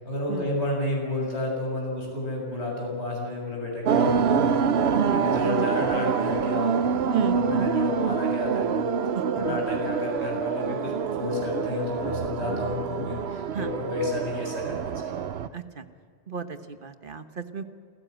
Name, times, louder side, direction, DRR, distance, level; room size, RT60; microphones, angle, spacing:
voice 1, 0.0-4.5 5.0-8.9 9.3-10.9 11.2-15.2, left 2 dB, 80° left, -2 dB, 7.4 m, -31 dB
sound 1, 3.8-15.5, right 6 dB, 70° right, 1.0 m, -26 dB
voice 2, 4.9-5.2 7.1-7.4 9.5-9.6 13.5-13.7 15.5-15.9 16.3-17.6, right 7 dB, 50° right, 8 dB, 1.3 m, -32 dB
28.0 x 15.5 x 8.0 m, 2.1 s
omnidirectional pair, 1.1 m